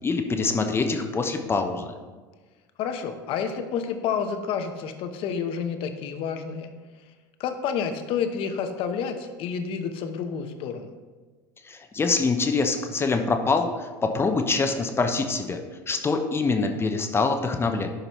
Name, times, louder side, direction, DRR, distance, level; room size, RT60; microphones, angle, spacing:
voice 1, 0.0-1.9 11.6-15.6 15.9-17.9, left 4 dB, 20° left, 5 dB, 0.8 m, -25 dB
voice 2, 2.8-6.7 7.4-10.9, left 6 dB, 55° left, 7 dB, 0.9 m, -29 dB
11.0 x 5.2 x 3.1 m, 1.3 s
hypercardioid pair, 85°, 11 cm